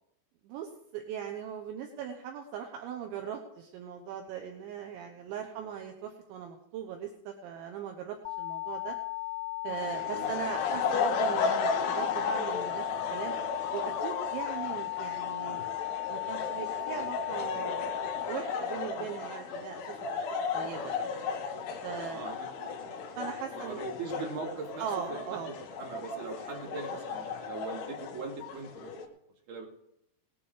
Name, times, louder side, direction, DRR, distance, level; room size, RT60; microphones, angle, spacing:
voice 1, 0.4-9.0 9.6-12.8 13.1-13.3 13.7-15.7 16.1-20.0 20.5-21.1 21.8-22.4 23.2-23.8 24.8-25.5, right 8 dB, 75° right, 3 dB, 3.2 m, -39 dB
sound 1, 8.3-18.3, left 17 dB, 90° left, 3.6 m, -36 dB
sound 2, 9.7-29.1, left 5 dB, 65° left, 3.0 m, -35 dB
voice 2, 22.1-23.0 23.5-29.1 29.5-29.7, right 4 dB, 45° right, -2 dB, 3.7 m, -41 dB
19.0 x 8.8 x 4.9 m, 0.79 s
omnidirectional pair, 5.7 m